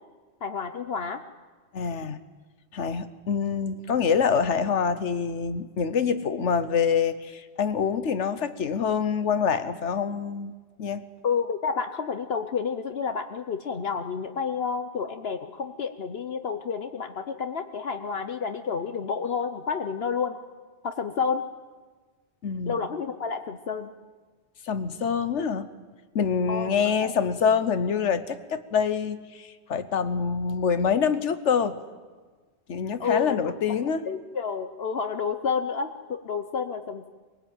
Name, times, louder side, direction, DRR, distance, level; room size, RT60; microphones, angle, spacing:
voice 1, 0.4-1.2 11.2-20.3 20.8-21.4 22.7-23.9 26.5-26.7 27.0-27.1 33.0-33.5 33.8-37.1, left 6 dB, 60° left, 8 dB, 1.1 m, -30 dB
voice 2, 1.7-2.2 2.7-11.0 22.4-22.8 24.7-25.7 26.1-31.8 32.7-34.0, left 6 dB, 80° left, 12 dB, 1.3 m, -26 dB
23.0 x 18.0 x 9.0 m, 1.4 s
omnidirectional pair, 1.2 m